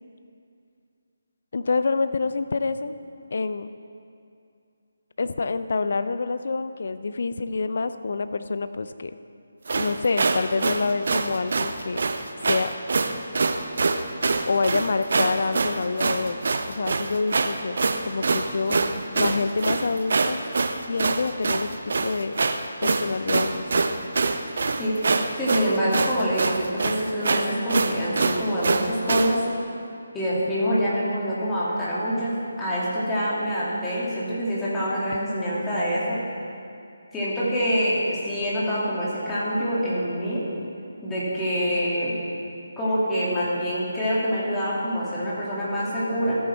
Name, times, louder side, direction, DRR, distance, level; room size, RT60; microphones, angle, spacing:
voice 1, 1.5-3.0 3.3-3.7 5.2-9.2 9.8-12.0 12.5-12.7 14.5-16.4 16.7-17.8 18.1-18.8 19.1-20.4 20.9-22.3 22.8-23.9, left 4 dB, 55° left, 12 dB, 0.5 m, -27 dB
sound 1, 9.7-29.4, right 3 dB, 55° right, 0.6 m, -25 dB
voice 2, 25.4-29.4 30.1-36.2 37.1-40.5 41.0-42.1 42.8-46.4, equal, 10° left, -9 dB, 2.4 m, -25 dB
14.0 x 8.6 x 3.4 m, 2.5 s
figure-of-eight pair, 150°, 0 cm